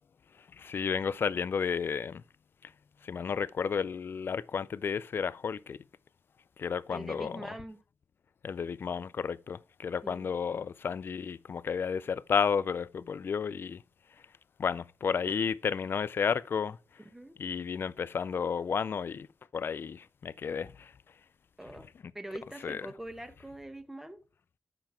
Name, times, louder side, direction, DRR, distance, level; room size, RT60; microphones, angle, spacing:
voice 1, 0.4-2.2 2.6-2.7 3.0-5.8 6.6-7.5 8.4-13.8 14.6-16.8 17.4-19.3 19.5-20.9 22.6-22.8, left 6 dB, 55° left, 0.4 m, -32 dB
voice 2, 6.9-7.8 10.0-10.3 17.1-17.4 21.6-21.8 22.1-24.2, right 1 dB, 5° right, 1.0 m, -43 dB
7.7 x 5.9 x 4.3 m
cardioid pair, 95°, 4 cm